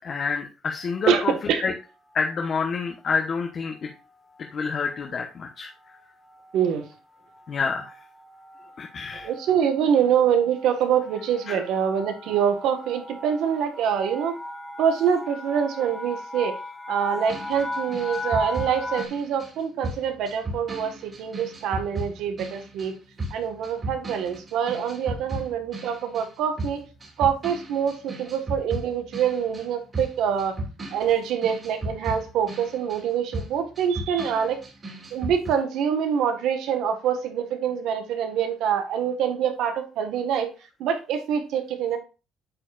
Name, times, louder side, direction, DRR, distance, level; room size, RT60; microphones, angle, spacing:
voice 1, 0.0-1.7 2.1-3.9 4.4-5.7 7.5-7.9 8.8-9.3 11.5-11.6, left 5 dB, 40° left, 2 dB, 1.1 m, -28 dB
sound 1, 0.9-1.4 2.1-2.5 2.8-3.0 3.3-19.1, left 2 dB, 5° left, 1.2 m, -39 dB
voice 2, 1.1-1.6 6.5-6.8 9.2-14.4 14.8-16.6 16.9-22.9 23.3-26.8 27.2-30.5 30.9-34.6 35.1-40.5 40.8-42.0, right 8 dB, 75° right, 6 dB, 1.7 m, -25 dB
sound 2, 17.3-26.3 26.6-35.5, right 1 dB, 25° right, 2.7 m, -35 dB
8.8 x 7.0 x 2.6 m, 0.31 s
cardioid pair, 140°, 0 cm